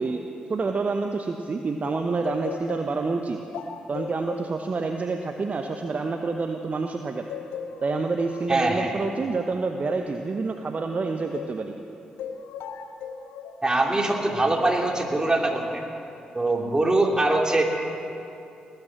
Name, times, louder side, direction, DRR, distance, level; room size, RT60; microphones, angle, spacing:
voice 1, 0.0-3.4 3.9-7.3 7.8-11.7, right 4 dB, 40° right, 5 dB, 0.9 m, -28 dB
sound 1, 1.8-6.9 7.3-11.6 12.2-13.6 14.6-15.1, left 7 dB, 75° left, 0.8 m, -39 dB
voice 2, 8.5-9.0 13.6-15.8 16.3-17.6, right 2 dB, 20° right, 0 dB, 2.9 m, -23 dB
19.0 x 9.1 x 7.6 m, 2.7 s
hypercardioid pair, 40°, 4 cm